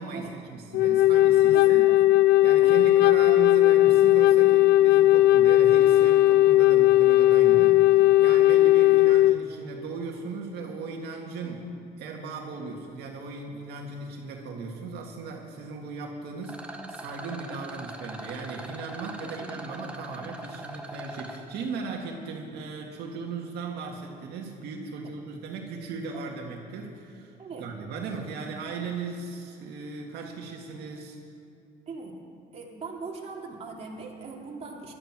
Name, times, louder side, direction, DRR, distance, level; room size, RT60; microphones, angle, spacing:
voice 1, 0.0-1.8 2.4-7.7 8.2-11.6 12.0-31.2, right 4 dB, 75° right, 0 dB, 1.9 m, -37 dB
Wind instrument woodwind instrument, 0.7-9.4, left 15 dB, 85° left, 0.4 m, -18 dB
voice 2, 1.5-2.0 2.6-2.9 7.4-7.6 11.4-11.7 19.0-19.8 25.0-25.1 26.1-26.3 27.4-27.6 31.9-32.1 32.5-34.9, right 4 dB, 40° right, -2 dB, 2.7 m, -41 dB
Rattle, 16.4-21.4, right 1 dB, 5° right, 1.6 m, -41 dB
16.5 x 12.0 x 6.1 m, 2.5 s
cardioid pair, 110°, 17 cm